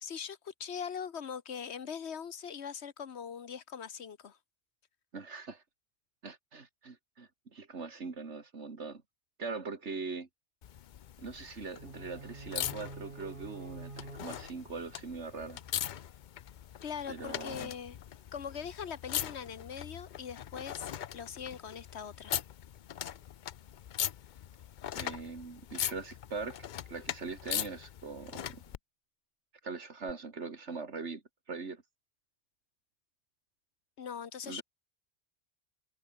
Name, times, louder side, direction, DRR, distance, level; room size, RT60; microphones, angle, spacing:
voice 1, 0.0-4.4 16.8-18.0 18.3-22.3 34.0-34.6, left 7 dB, 75° left, 1.4 m, -41 dB
voice 2, 5.1-5.6 6.2-9.0 9.4-10.3 11.2-15.6 17.1-17.7 24.9-28.6 29.6-31.2 31.5-31.8 34.5-34.6, right 4 dB, 85° right, 2.6 m, -41 dB
sound 1, 10.6-28.8 30.1-30.2, left 10 dB, 55° left, 0.6 m, -41 dB
sound 2, 11.8-15.8, right 3 dB, 45° right, 2.1 m, -49 dB
omnidirectional pair, 1.1 m